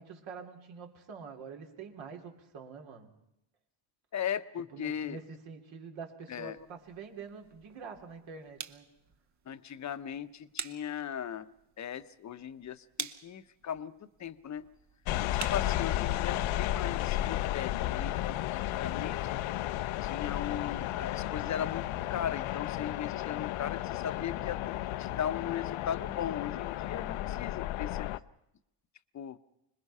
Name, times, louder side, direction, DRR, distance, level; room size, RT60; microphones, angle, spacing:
voice 1, 0.0-3.1 4.7-8.9 20.6-20.9, right 5 dB, 65° right, 3 dB, 3.3 m, -46 dB
voice 2, 4.1-5.2 6.3-6.6 9.5-11.5 11.8-14.6 15.2-19.4 20.0-21.8 22.1-28.1 29.1-29.4, left 9 dB, 35° left, 12 dB, 0.9 m, -38 dB
sound 1, 6.5-16.3, right 7 dB, 35° right, 1.0 m, -47 dB
sound 2, 15.1-28.2, left 14 dB, 75° left, 0.8 m, -33 dB
26.0 x 21.0 x 5.6 m, 0.85 s
cardioid pair, 120°, 49 cm